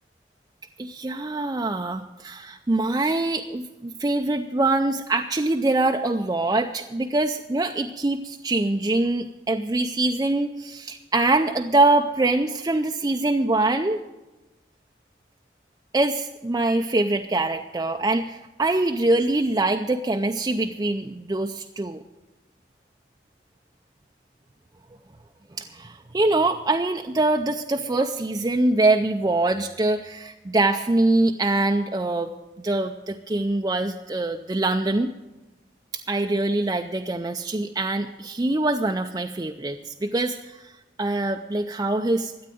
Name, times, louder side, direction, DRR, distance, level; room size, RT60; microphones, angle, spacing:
voice 1, 0.8-14.0 15.9-22.0 25.6-32.3 32.6-35.1 35.9-40.7 41.0-42.3, right 2 dB, 20° right, 4 dB, 0.4 m, -24 dB
13.0 x 8.7 x 9.1 m, 1.1 s
head